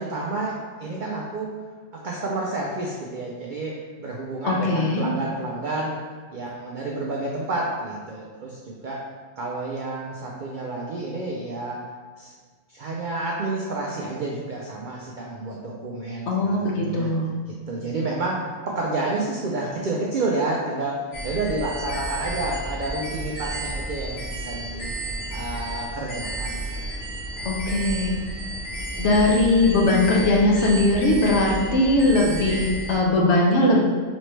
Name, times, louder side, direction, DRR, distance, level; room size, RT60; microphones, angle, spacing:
voice 1, 0.0-1.6 1.9-6.0 6.3-9.0 9.4-11.8 12.2-12.3 12.7-17.1 17.5-24.9 25.3-26.6 27.4-27.5, right 2 dB, 70° right, -3 dB, 0.4 m, -30 dB
voice 2, 4.4-5.1 16.3-17.3 27.4-28.1 29.0-33.8, left 2 dB, 60° left, -2 dB, 0.9 m, -20 dB
sound 1, 21.1-33.0, right 2 dB, 90° left, 1.7 m, -32 dB
4.2 x 3.1 x 3.1 m, 1.5 s
omnidirectional pair, 1.4 m